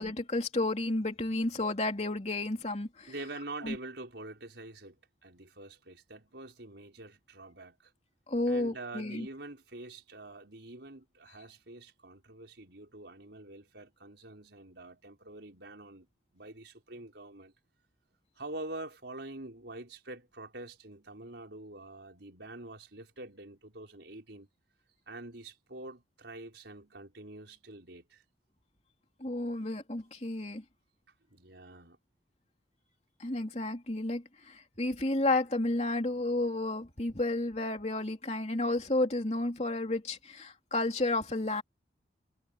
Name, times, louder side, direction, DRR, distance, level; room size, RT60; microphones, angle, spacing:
voice 1, 0.0-3.1 3.6-3.7 8.3-9.3 29.2-30.6 33.2-41.6, left 2 dB, 35° left, 3.1 m, -31 dB
voice 2, 3.1-7.9 8.5-16.1 16.3-17.5 18.4-24.5 25.1-28.2 31.3-32.0, right 2 dB, 75° right, 4.7 m, -46 dB
head